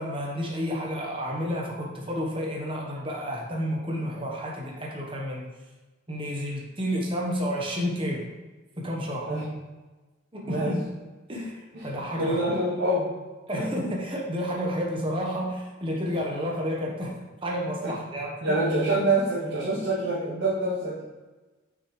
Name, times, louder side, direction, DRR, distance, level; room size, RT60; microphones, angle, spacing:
voice 1, 0.0-5.5 6.1-8.3 8.8-9.3 10.3-10.7 11.3-12.4 13.5-18.6, equal, 25° right, -1 dB, 1.1 m, -30 dB
voice 2, 12.2-13.1 13.5-13.7 17.8-17.9 18.4-21.0, right 2 dB, 75° right, -11 dB, 2.3 m, -26 dB
6.5 x 6.2 x 3.2 m, 1.2 s
head